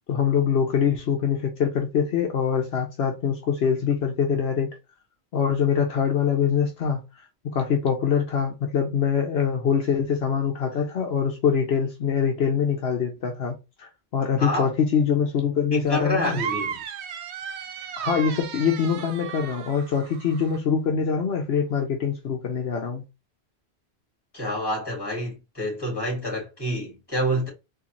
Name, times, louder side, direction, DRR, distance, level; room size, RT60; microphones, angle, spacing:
voice 1, 0.1-4.7 5.3-7.0 7.5-16.4 18.0-23.0, left 7 dB, 70° left, 1.0 m, -24 dB
voice 2, 14.4-14.7 15.7-16.8 24.3-27.5, equal, 20° left, 2.2 m, -27 dB
sound 1, 16.2-20.6, right 8 dB, 90° right, 0.9 m, -35 dB
3.9 x 2.7 x 2.9 m
omnidirectional pair, 1.1 m